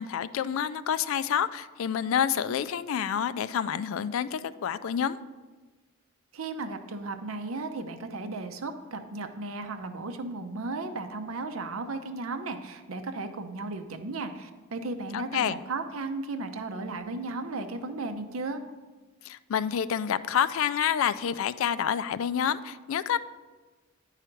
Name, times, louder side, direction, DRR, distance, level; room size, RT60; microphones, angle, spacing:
voice 1, 0.0-5.2 15.1-15.6 19.2-23.2, left 8 dB, 70° left, 15 dB, 0.3 m, -28 dB
voice 2, 6.3-18.6, right 3 dB, 80° right, 8 dB, 0.7 m, -35 dB
9.9 x 4.9 x 4.5 m, 1.3 s
head